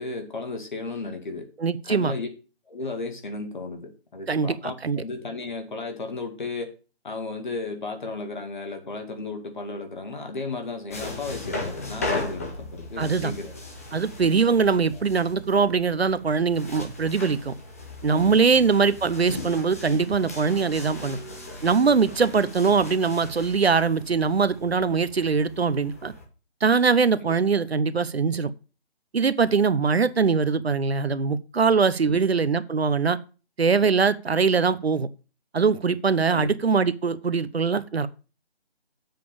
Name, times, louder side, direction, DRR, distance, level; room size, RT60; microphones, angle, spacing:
voice 1, 0.0-1.5 1.8-2.3 2.7-6.7 7.0-13.5 14.9-15.0 27.2-27.3 32.0-32.2 36.3-36.5, left 3 dB, 45° left, 2.2 m, -34 dB
voice 2, 1.6-2.1 4.3-5.0 13.0-13.3 13.9-17.5 18.0-21.2 21.6-26.1 26.6-28.5 29.1-33.2 33.6-35.1 35.5-38.1, right 5 dB, 70° right, 0.9 m, -22 dB
sound 1, 10.9-26.2, left 2 dB, 15° left, 0.8 m, -37 dB
7.7 x 5.2 x 6.9 m
figure-of-eight pair, 160°, 33 cm